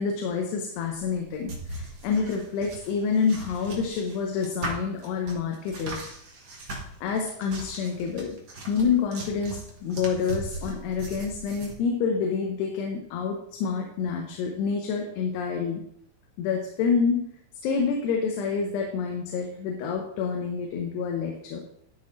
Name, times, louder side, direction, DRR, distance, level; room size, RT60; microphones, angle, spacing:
voice 1, 0.0-6.0 7.0-8.4 8.7-15.8 16.4-17.2 17.6-21.6, left 5 dB, 80° left, 2 dB, 3.1 m, -28 dB
sound 1, 0.9-11.7, right 2 dB, 90° right, 0.9 m, -39 dB
11.5 x 6.5 x 3.8 m, 0.70 s
omnidirectional pair, 4.8 m